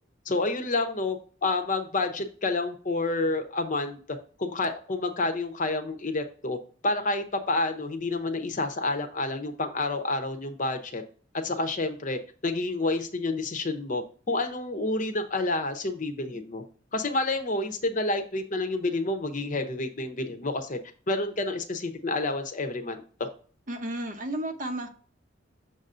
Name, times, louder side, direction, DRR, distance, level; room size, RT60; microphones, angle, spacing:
voice 1, 0.3-6.6 6.8-11.0 11.3-16.6 16.9-20.8 21.1-23.3, left 2 dB, 40° left, 6 dB, 0.8 m, -29 dB
voice 2, 23.7-24.9, right 1 dB, 45° right, 6 dB, 0.8 m, -32 dB
6.9 x 2.6 x 5.5 m, 0.42 s
head